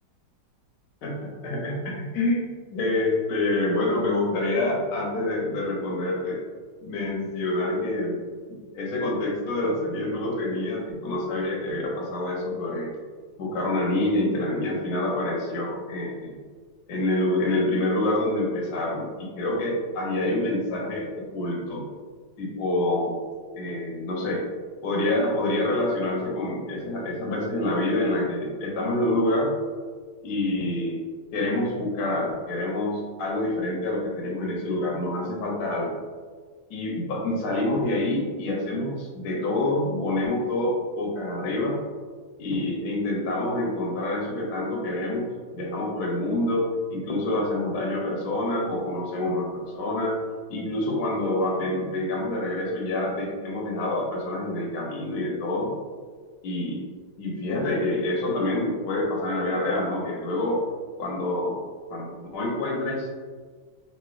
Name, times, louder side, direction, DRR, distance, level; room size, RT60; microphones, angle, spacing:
voice 1, 1.0-2.4 2.7-6.4 6.8-8.2 8.5-12.9 13.4-16.4 16.9-21.8 22.4-23.2 23.5-24.4 24.8-29.5 30.2-31.0 31.3-35.9 36.7-41.8 42.4-50.2 50.5-55.7 56.4-56.8 57.2-60.6 61.0-61.6 61.9-63.1, left 1 dB, 75° left, -2 dB, 1.1 m, -27 dB
3.1 x 2.8 x 2.3 m, 1.5 s
omnidirectional pair, 1.8 m